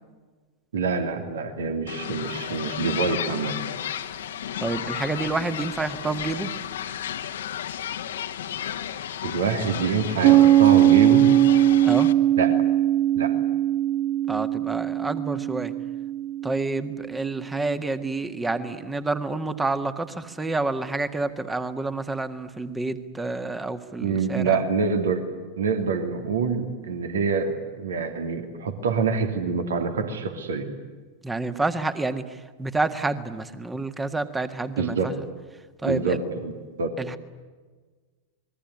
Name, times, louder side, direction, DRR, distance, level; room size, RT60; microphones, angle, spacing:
voice 1, 0.7-3.5 9.2-11.3 12.4-12.6 13.1-13.4 24.0-25.2 25.6-30.7 34.8-35.1 35.8-36.5 36.8-36.9, right 5 dB, 65° right, 7 dB, 2.8 m, -26 dB
sound 1, 1.9-12.1, left 10 dB, 60° left, 1.5 m, -33 dB
voice 2, 4.6-6.5 11.8-12.1 14.3-15.7 16.4-24.6 31.2-35.3 35.8-36.2 37.0-37.2, right 3 dB, 10° right, 11 dB, 1.8 m, -29 dB
Piano, 10.2-17.5, right 12 dB, 45° right, 0.8 m, -20 dB
27.5 x 21.5 x 9.8 m, 1.4 s
figure-of-eight pair, 90°, 0 cm